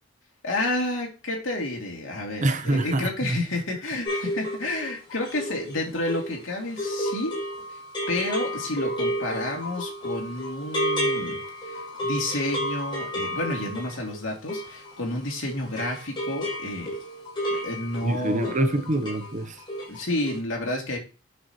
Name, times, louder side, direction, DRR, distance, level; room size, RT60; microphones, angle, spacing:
voice 1, 0.4-7.3 8.1-16.9 17.5-18.6 19.9-21.0, left 1 dB, 75° left, 2.5 m, -30 dB
voice 2, 2.4-3.1 18.0-19.6, right 1 dB, 40° right, 0.8 m, -25 dB
sound 1, 4.0-15.3 15.6-19.3 19.6-20.0 20.3-20.4, equal, 25° left, 4.2 m, -31 dB
8.6 x 6.4 x 3.0 m
head